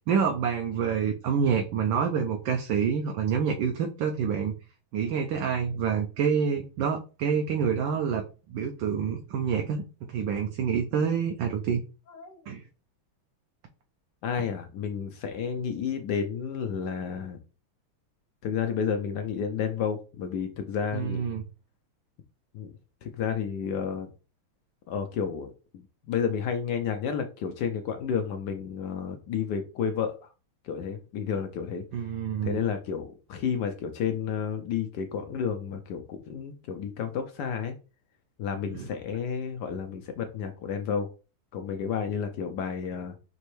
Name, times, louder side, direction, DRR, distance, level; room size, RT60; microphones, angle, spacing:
voice 1, 0.1-4.5 4.9-8.2 8.5-9.8 10.1-11.8 12.5-12.6 20.9-21.4 31.9-32.6 38.7-38.9, right 7 dB, 75° right, 3 dB, 1.2 m, -27 dB
voice 2, 12.1-12.4 14.2-17.4 18.4-21.2 22.5-24.1 24.9-30.3 30.6-31.8 32.4-37.7 38.4-41.1 41.5-43.2, left 7 dB, 75° left, 6 dB, 1.0 m, -31 dB
5.4 x 3.0 x 3.1 m, 0.33 s
omnidirectional pair, 2.3 m